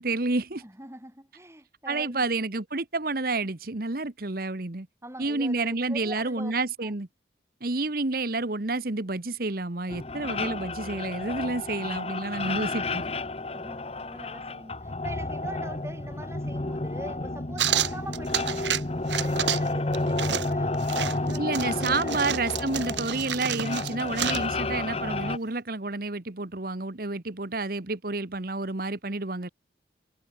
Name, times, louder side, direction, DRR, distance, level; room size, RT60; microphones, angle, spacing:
voice 1, 0.0-0.6 1.9-4.9 5.2-7.1 7.6-13.0 21.4-29.5, right 3 dB, 55° right, 1.3 m, -29 dB
voice 2, 0.6-2.2 5.0-6.5 6.8-6.9 13.5-22.6, right 1 dB, 15° right, 7.1 m, -43 dB
sound 1, 9.9-25.4, left 2 dB, 35° left, 1.0 m, -31 dB
sound 2, 17.6-18.8 19.1-19.7 19.9-24.5, right 9 dB, 80° right, 1.7 m, -30 dB
head